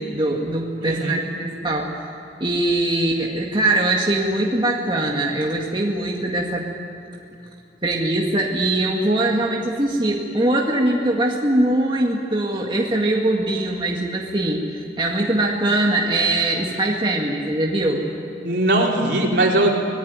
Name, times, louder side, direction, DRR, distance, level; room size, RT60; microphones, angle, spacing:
voice 1, 0.0-2.0 2.4-6.7 7.8-18.1, right 1 dB, 25° right, -1 dB, 1.9 m, -22 dB
voice 2, 0.8-1.2 18.4-19.7, right 1 dB, 65° right, -1 dB, 4.0 m, -20 dB
24.5 x 19.0 x 9.7 m, 2.8 s
head